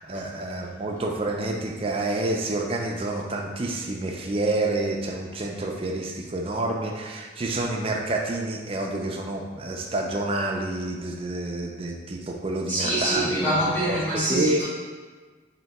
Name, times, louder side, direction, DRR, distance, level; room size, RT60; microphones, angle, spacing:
voice 1, 0.0-13.5 13.9-14.0 14.3-14.7, right 2 dB, 30° right, 0 dB, 0.4 m, -28 dB
voice 2, 12.7-14.7, right 1 dB, 10° left, -9 dB, 0.9 m, -25 dB
3.4 x 2.8 x 4.1 m, 1.4 s
head